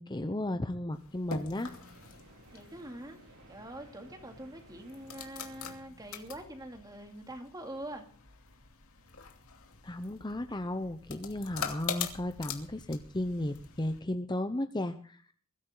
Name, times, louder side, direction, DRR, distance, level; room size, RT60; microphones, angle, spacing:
voice 1, 0.0-1.7 9.8-15.3, left 1 dB, 20° left, 0.8 m, -34 dB
sound 1, 0.9-14.0, left 6 dB, 90° left, 2.6 m, -44 dB
sound 2, 1.6-5.7, right 1 dB, 90° right, 4.4 m, -56 dB
voice 2, 2.5-3.2 3.5-8.1, right 1 dB, 20° right, 2.7 m, -44 dB
22.0 x 13.5 x 4.0 m
head